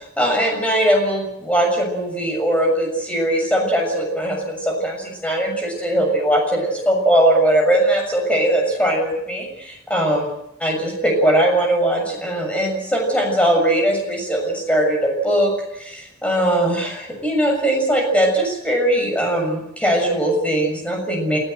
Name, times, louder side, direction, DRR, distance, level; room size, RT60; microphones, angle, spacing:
voice 1, 0.2-10.2 10.6-15.5 15.8-21.4, right 1 dB, 5° left, 1 dB, 6.8 m, -20 dB
29.0 x 16.5 x 7.9 m, 0.82 s
head